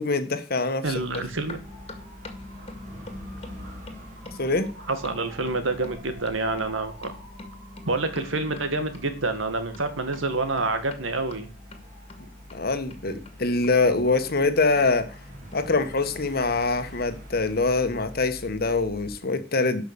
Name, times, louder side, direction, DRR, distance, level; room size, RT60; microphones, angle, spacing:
voice 1, 0.0-0.8 4.4-4.7 12.5-15.1 15.5-19.8, left 3 dB, 50° left, 9 dB, 1.3 m, -24 dB
sound 1, 0.8-19.2, left 2 dB, 30° left, 1.8 m, -44 dB
voice 2, 0.8-1.6 4.9-7.1 7.9-11.5, right 3 dB, 85° right, 9 dB, 1.9 m, -27 dB
Dog / Motorcycle, 1.4-18.2, right 1 dB, 40° right, 3.2 m, -48 dB
12.0 x 5.7 x 6.9 m, 0.36 s
head